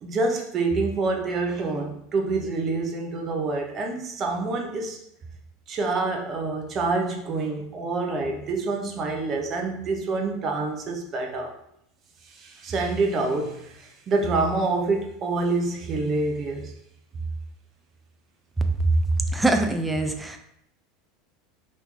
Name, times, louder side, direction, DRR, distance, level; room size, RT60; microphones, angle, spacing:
voice 1, 0.0-5.0 5.7-11.5 12.3-16.7, right 3 dB, 40° right, 2 dB, 0.7 m, -27 dB
voice 2, 19.3-20.4, right 2 dB, 10° right, 5 dB, 0.5 m, -23 dB
2.9 x 2.6 x 3.5 m, 0.75 s
hypercardioid pair, 80°, 0 cm